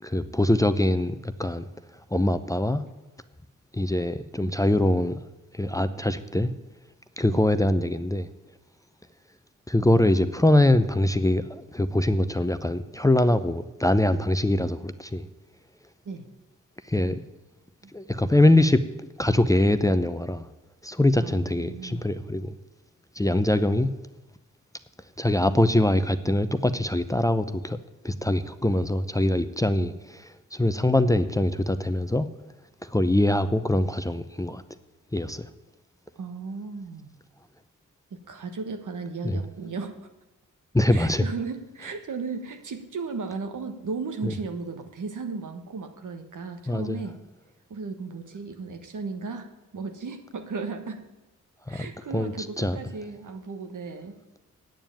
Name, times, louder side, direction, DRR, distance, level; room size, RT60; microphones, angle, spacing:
voice 1, 0.0-1.7 2.1-2.8 3.7-5.2 5.5-6.5 7.2-8.3 9.7-15.3 16.9-17.2 17.9-18.8 19.2-20.5 20.8-22.5 23.2-23.9 25.2-27.8 28.0-29.9 30.5-32.3 32.8-34.6 35.1-35.5 39.2-39.4 40.7-41.2 44.2-44.3 46.7-47.0 51.7-51.9 52.1-52.8, left 1 dB, 10° left, 10 dB, 0.7 m, -23 dB
voice 2, 17.8-18.1 21.2-22.1 29.8-30.0 33.4-33.5 36.1-37.1 38.1-40.1 40.9-47.2 47.7-51.0 51.7-54.2, right 4 dB, 70° right, 7 dB, 1.5 m, -36 dB
9.2 x 7.0 x 8.9 m, 1.0 s
cardioid pair, 45°, 32 cm